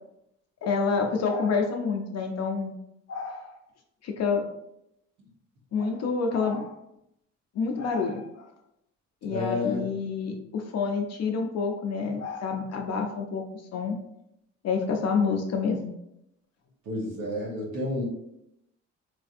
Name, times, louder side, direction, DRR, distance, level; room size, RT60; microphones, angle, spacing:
voice 1, 0.6-2.8 3.1-3.6 4.0-4.5 5.7-6.7 7.5-8.5 9.2-13.4 13.7-14.0 14.6-15.9, left 5 dB, 60° left, 3 dB, 0.5 m, -28 dB
voice 2, 9.3-9.9 16.8-18.1, left 2 dB, 75° right, -3 dB, 1.0 m, -30 dB
3.2 x 2.5 x 2.5 m, 0.81 s
cardioid pair, 90°, 30 cm